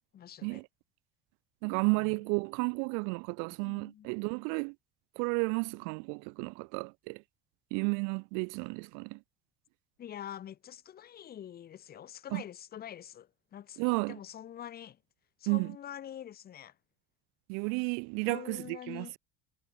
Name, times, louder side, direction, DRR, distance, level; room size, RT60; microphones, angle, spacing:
voice 1, 0.1-0.6 1.9-2.1 3.6-4.1 10.0-15.0 15.4-16.8 18.3-19.1, left 10 dB, 30° left, 1.7 m, -45 dB
voice 2, 1.6-4.7 5.2-7.2 7.7-9.2 12.3-12.4 13.8-14.2 15.5-15.7 17.5-19.2, right 39 dB, 70° right, 0.5 m, -32 dB
cardioid pair, 170°, 32 cm